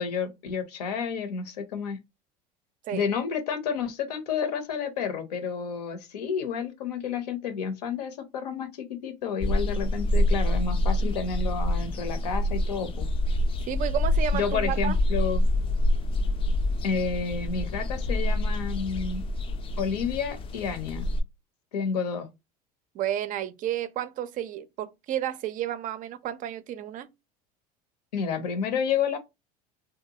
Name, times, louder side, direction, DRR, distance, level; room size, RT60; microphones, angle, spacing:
voice 1, 0.0-2.0 2.9-13.1 14.3-15.5 16.8-19.2 19.8-21.1 21.7-22.3 28.1-29.2, left 6 dB, 85° left, 0.6 m, -30 dB
sound 1, 9.4-21.2, left 1 dB, 25° left, 0.3 m, -26 dB
voice 2, 13.7-15.0 22.9-27.1, right 11 dB, 40° right, 0.4 m, -31 dB
2.7 x 2.2 x 2.7 m
hypercardioid pair, 80°, 20 cm